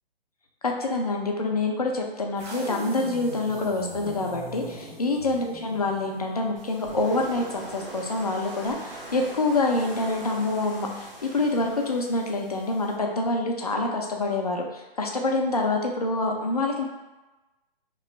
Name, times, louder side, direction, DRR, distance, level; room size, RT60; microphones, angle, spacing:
voice 1, 0.6-16.8, left 2 dB, 40° left, 1 dB, 0.4 m, -26 dB
sound 1, 2.4-6.7, right 1 dB, 50° right, 1.3 m, -40 dB
sound 2, 6.5-12.9, right 1 dB, 30° right, 0.8 m, -42 dB
3.0 x 2.5 x 4.2 m, 1.1 s
hypercardioid pair, 180°, 30 cm